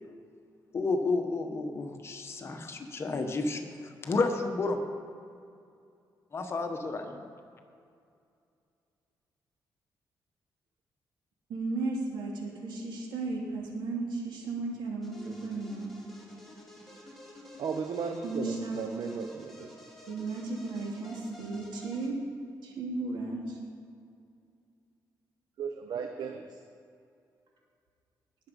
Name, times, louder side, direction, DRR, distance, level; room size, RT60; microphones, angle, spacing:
voice 1, 0.7-4.8 6.3-7.3, left 3 dB, 35° left, 5 dB, 1.2 m, -31 dB
voice 2, 11.5-15.9 18.2-18.8 20.1-22.2 22.6-23.6, right 3 dB, 85° right, -1 dB, 3.0 m, -35 dB
sound 1, 15.0-22.1, left 1 dB, 5° left, 2.6 m, -51 dB
voice 3, 17.6-19.7 25.6-26.4, right 6 dB, 65° right, 4 dB, 0.9 m, -35 dB
20.0 x 7.3 x 5.3 m, 2.4 s
wide cardioid pair, 155°, 8 cm